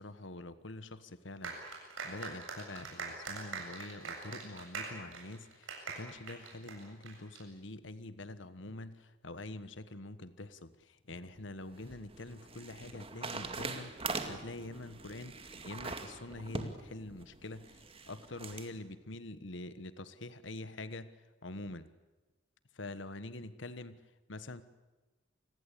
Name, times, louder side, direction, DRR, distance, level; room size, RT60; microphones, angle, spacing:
voice 1, 0.0-1.6 2.0-5.7 5.9-9.0 9.2-10.7 11.1-13.9 14.3-15.3 15.6-17.6 18.1-21.1 21.4-21.9 22.8-24.0 24.3-24.6, left 2 dB, 65° left, 13 dB, 1.3 m, -45 dB
sound 1, 1.4-7.4, right 4 dB, 85° right, 7.9 m, -43 dB
sound 2, 11.4-18.7, right 3 dB, 30° right, 2.3 m, -43 dB
28.5 x 20.5 x 8.5 m, 1.2 s
head